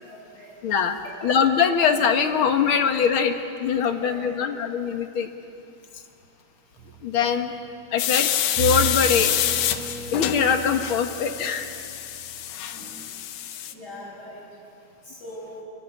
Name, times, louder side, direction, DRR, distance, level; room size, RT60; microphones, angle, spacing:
voice 1, 0.1-0.5 1.0-1.3 3.9-4.7 12.7-13.0 13.7-14.4 15.2-15.6, left 1 dB, 30° left, -2 dB, 7.8 m, -41 dB
voice 2, 0.6-1.0 1.2-3.3 3.6-5.3 7.0-7.5 7.9-8.3 8.6-9.3 10.1-11.7, left 7 dB, 50° left, 6 dB, 2.0 m, -22 dB
sound 1, 6.8-7.7 8.6-12.5, right 7 dB, 60° right, 2.7 m, -34 dB
sound 2, 8.0-13.7, left 11 dB, 85° left, 2.5 m, -27 dB
28.0 x 25.0 x 8.5 m, 2.6 s
omnidirectional pair, 3.4 m